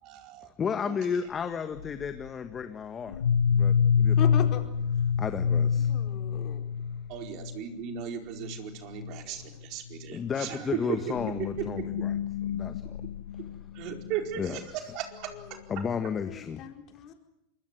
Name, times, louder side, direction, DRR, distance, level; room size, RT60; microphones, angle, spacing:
voice 1, 0.0-0.5 0.8-0.9 7.1-11.0 11.4-11.5 13.7-15.6, right 10 dB, 50° right, 4 dB, 4.5 m, -36 dB
voice 2, 0.6-3.2 3.5-4.3 5.2-5.9 10.1-12.1 12.5-12.8 14.4-14.6 15.7-16.6, left 6 dB, 25° left, 8 dB, 1.6 m, -33 dB
sound 1, 1.8-2.2 3.1-7.6 7.9-8.1 8.4-8.7 8.9-9.2 9.9-10.0 11.0-14.2, left 7 dB, 85° left, 0.9 m, -27 dB
voice 3, 4.2-4.6 5.9-6.7 16.3-17.1, left 9 dB, 45° left, 4 dB, 4.7 m, -37 dB
26.0 x 22.5 x 8.0 m, 0.85 s
hypercardioid pair, 105°, 0 cm